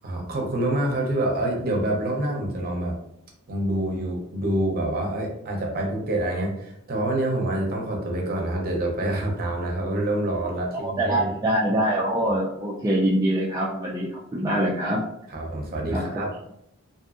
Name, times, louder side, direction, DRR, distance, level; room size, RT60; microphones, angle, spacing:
voice 1, 0.0-2.9 3.5-11.3 15.3-16.3, right 1 dB, 45° right, 0 dB, 0.7 m, -26 dB
voice 2, 10.8-15.0 15.9-16.0, right 1 dB, 15° right, -5 dB, 0.3 m, -24 dB
2.6 x 2.5 x 2.4 m, 0.77 s
head